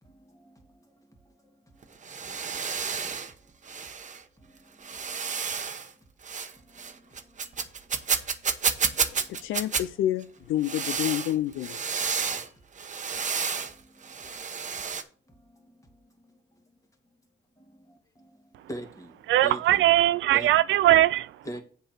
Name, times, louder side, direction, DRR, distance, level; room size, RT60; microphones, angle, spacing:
voice 1, 0.0-3.8 4.4-5.7 6.5-7.9 8.7-9.5 12.1-12.5 13.1-14.4 15.3-16.6 17.6-19.9 20.3-20.5 21.4-21.6, right 1 dB, 15° left, 2.3 m, -47 dB
sound 1, 1.8-3.3 3.7-4.2 4.8-5.9 6.2-6.5 6.8-9.8 10.6-12.5 12.8-13.7 14.0-15.0, right 6 dB, 40° right, 1.0 m, -30 dB
voice 2, 9.1-11.8, left 12 dB, 80° left, 0.5 m, -29 dB
voice 3, 19.3-21.3, right 14 dB, 75° right, 0.4 m, -20 dB
7.6 x 4.6 x 6.5 m
cardioid pair, 90°, 20 cm